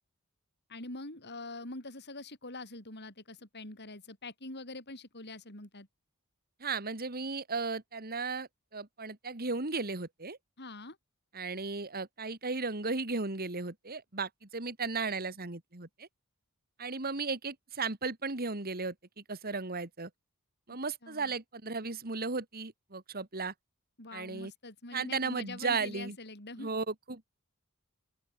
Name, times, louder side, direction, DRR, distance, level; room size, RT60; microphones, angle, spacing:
voice 1, 0.7-5.9 10.6-11.0 21.0-21.3 24.0-26.7, left 2 dB, 50° left, 7.7 m, -44 dB
voice 2, 6.6-10.4 11.3-16.1 16.8-20.1 20.7-23.5 24.1-24.5 24.9-26.2 26.6-27.2, right 4 dB, 45° right, 2.3 m, -35 dB
open air
head